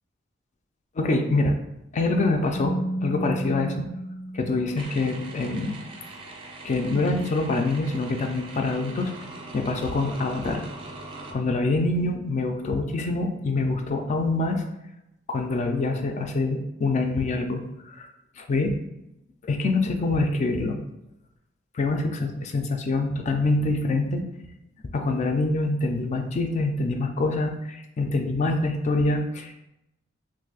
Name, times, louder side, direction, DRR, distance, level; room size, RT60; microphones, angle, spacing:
voice 1, 1.0-1.5 1.9-3.9 4.3-5.8 6.6-9.1 9.5-10.6 11.3-14.6 15.3-18.1 18.4-18.7 19.4-20.8 21.7-24.2 24.9-29.5, left 2 dB, 35° left, 4 dB, 0.3 m, -25 dB
Keyboard (musical), 2.5-5.3, right 1 dB, 85° left, 0.6 m, -32 dB
sound 1, 4.8-11.3, right 2 dB, 25° right, 0.4 m, -41 dB
2.6 x 2.4 x 3.8 m, 0.88 s
head